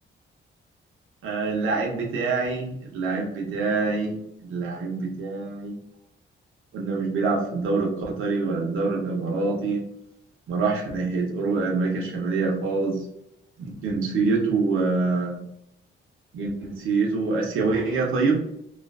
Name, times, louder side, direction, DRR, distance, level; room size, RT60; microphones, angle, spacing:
voice 1, 1.2-4.2 4.4-5.8 6.7-9.8 10.5-13.1 13.6-15.4 16.3-18.4, right 4 dB, 90° right, -2 dB, 0.6 m, -25 dB
2.4 x 2.3 x 2.2 m, 0.78 s
wide cardioid pair, 170°, 20 cm